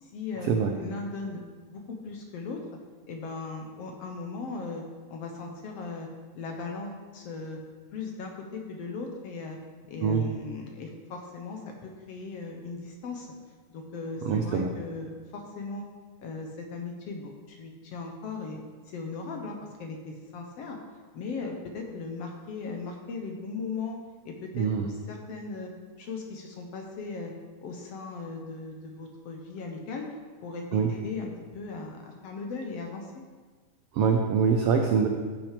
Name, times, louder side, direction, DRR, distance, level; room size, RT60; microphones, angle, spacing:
voice 1, 0.0-2.6 3.1-4.8 5.1-6.1 6.3-7.6 7.9-9.6 9.9-13.3 13.7-15.8 16.2-18.6 18.9-20.8 21.1-24.0 24.3-25.7 26.0-27.3 27.6-30.2 30.4-33.1, left 4 dB, 65° left, 2 dB, 1.8 m, -38 dB
voice 2, 14.2-14.7 24.5-24.9 30.7-30.9 33.9-35.1, right 6 dB, 80° right, 3 dB, 1.3 m, -24 dB
14.0 x 6.0 x 5.1 m, 1.4 s
omnidirectional pair, 3.5 m